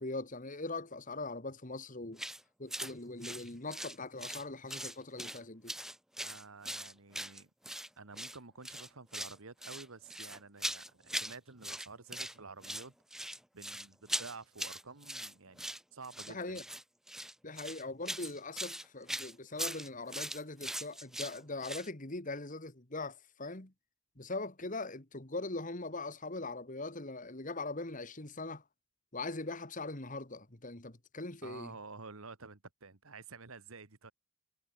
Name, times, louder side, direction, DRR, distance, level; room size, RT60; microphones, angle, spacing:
voice 1, 0.0-2.2 2.6-5.7 16.3-16.6 17.4-23.7 24.2-28.6 29.1-31.7, left 2 dB, 40° left, 2.3 m, -41 dB
sound 1, 2.2-2.4 2.7-2.9 3.2-4.4 4.7-5.4 5.7-7.9 8.1-8.4 8.6-9.4 9.6-11.4 11.6-12.3 12.6-21.9, right 1 dB, ahead, 1.5 m, -40 dB
voice 2, 6.2-7.5 8.0-13.0 13.5-16.6 31.4-34.1, right 4 dB, 80° right, 1.7 m, -50 dB
head